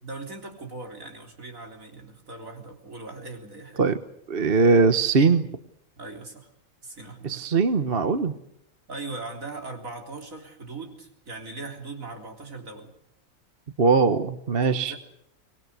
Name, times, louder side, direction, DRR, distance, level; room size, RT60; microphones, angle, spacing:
voice 1, 0.0-3.9 6.0-6.5 6.8-7.5 8.9-12.9 14.6-15.0, right 3 dB, 70° right, 3 dB, 4.0 m, -39 dB
voice 2, 4.3-5.5 7.2-8.3 13.8-14.9, right 4 dB, 45° right, 10 dB, 1.3 m, -21 dB
24.5 x 21.5 x 8.2 m, 0.72 s
omnidirectional pair, 1.5 m